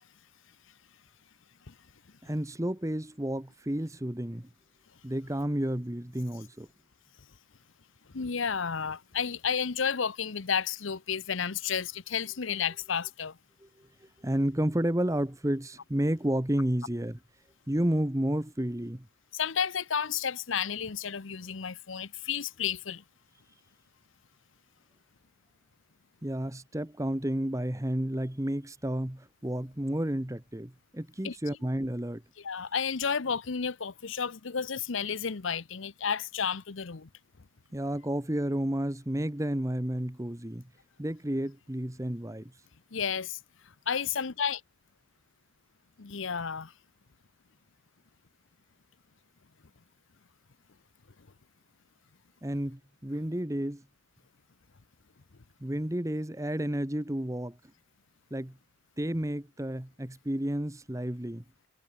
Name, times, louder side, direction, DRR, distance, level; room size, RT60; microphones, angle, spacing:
voice 1, 2.2-4.5 5.0-6.7 13.6-13.7 14.2-17.2 17.7-19.1 26.2-32.2 37.7-40.7 41.0-42.5 52.4-53.8 55.6-57.6 58.3-58.6 59.0-61.4, right 1 dB, 15° right, 1.1 m, -31 dB
voice 2, 8.1-13.3 19.3-23.0 31.2-31.4 32.4-37.1 42.9-43.4 43.9-44.6 46.0-46.7, left 7 dB, 75° left, 0.9 m, -32 dB
head